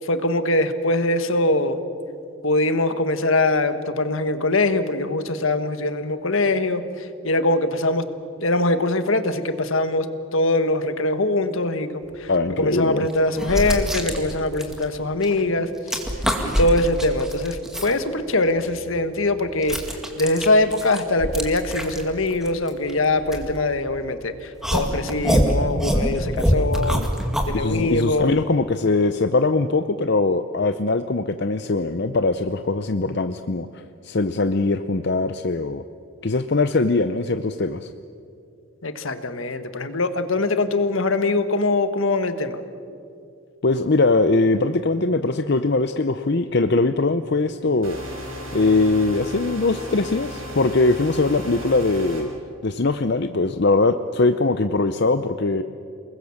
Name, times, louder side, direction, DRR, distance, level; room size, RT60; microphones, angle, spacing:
voice 1, 0.0-1.8 2.4-8.1 8.4-12.3 12.6-16.0 16.4-19.8 20.2-27.0 27.5-28.4 38.8-42.6, left 2 dB, 70° left, 10 dB, 1.5 m, -22 dB
voice 2, 12.3-13.1 26.9-27.1 27.5-35.8 36.2-37.9 43.6-48.2 48.5-52.3 52.6-55.6, left 3 dB, 50° left, 9 dB, 0.7 m, -21 dB
sound 1, 12.3-12.4 13.1-15.4 15.7-17.9 18.4-24.0 24.6-27.6, equal, ahead, 2.1 m, -25 dB
sound 2, 47.8-52.2, equal, 75° right, 7.4 m, -35 dB
29.5 x 20.5 x 7.2 m, 2.4 s
head